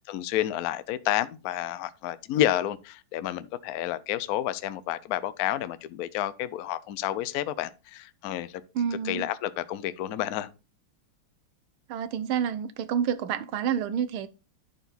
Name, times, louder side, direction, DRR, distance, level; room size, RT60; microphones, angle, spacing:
voice 1, 0.1-8.5 9.0-10.5, left 12 dB, 85° left, 0.8 m, -30 dB
voice 2, 8.8-9.3 11.9-14.3, right 8 dB, 80° right, 1.6 m, -28 dB
11.0 x 4.5 x 4.0 m
omnidirectional pair, 2.3 m